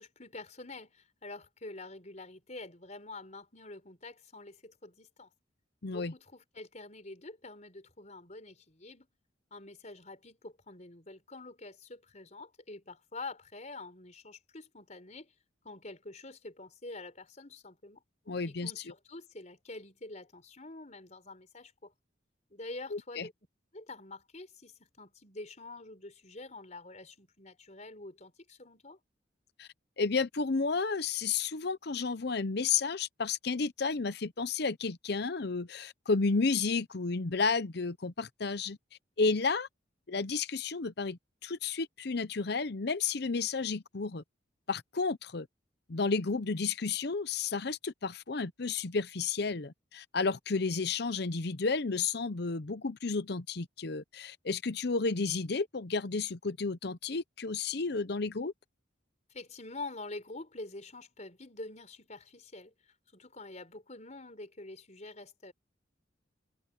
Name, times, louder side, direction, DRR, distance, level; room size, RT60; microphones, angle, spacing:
voice 1, 0.0-5.3 5.9-9.1 9.5-15.3 15.6-18.0 18.5-21.9 22.5-23.3 23.7-29.0 59.3-62.7 63.1-65.5, left 2 dB, 40° left, 4.9 m, -46 dB
voice 2, 5.8-6.1 18.3-18.7 22.9-23.3 29.6-29.7 30.0-38.8 39.2-39.7 40.1-44.2 44.7-45.5 45.9-58.5, left 4 dB, 60° left, 0.8 m, -32 dB
head